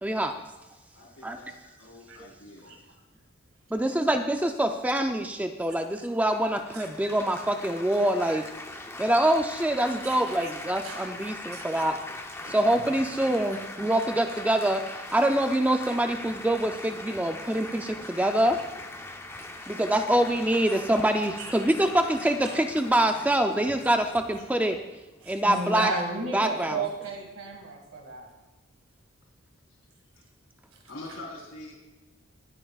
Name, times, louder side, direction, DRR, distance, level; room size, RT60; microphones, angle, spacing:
voice 1, 0.0-0.3 1.2-1.4 3.7-8.4 9.0-12.0 12.5-18.6 19.7-24.8 25.3-25.9 26.3-26.8, right 1 dB, 5° right, 6 dB, 0.4 m, -25 dB
voice 2, 0.9-2.7 30.9-31.7, left 2 dB, 80° left, -4 dB, 4.0 m, -44 dB
Laughter / Applause / Chatter, 6.3-25.4, left 2 dB, 10° left, 0.7 m, -41 dB
voice 3, 10.0-10.5 10.8-11.0 11.5-11.8 12.4-12.6 13.5-13.6 20.8-20.9 21.4-21.5 22.4-22.6 25.2-28.3, right 3 dB, 85° right, 2 dB, 1.8 m, -35 dB
24.0 x 8.9 x 2.4 m, 1.1 s
head